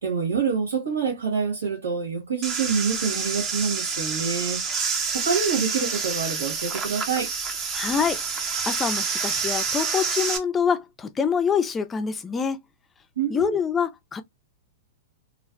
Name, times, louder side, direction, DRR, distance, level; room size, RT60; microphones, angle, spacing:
voice 1, 0.0-4.8 5.1-7.3 13.2-13.6, right 6 dB, 85° right, 1.2 m, -26 dB
sound 1, 2.4-10.4, right 5 dB, 30° right, 0.6 m, -28 dB
voice 2, 7.7-12.6 13.3-14.2, left 6 dB, 20° left, 0.4 m, -26 dB
2.5 x 2.1 x 2.3 m
hypercardioid pair, 115°, 0 cm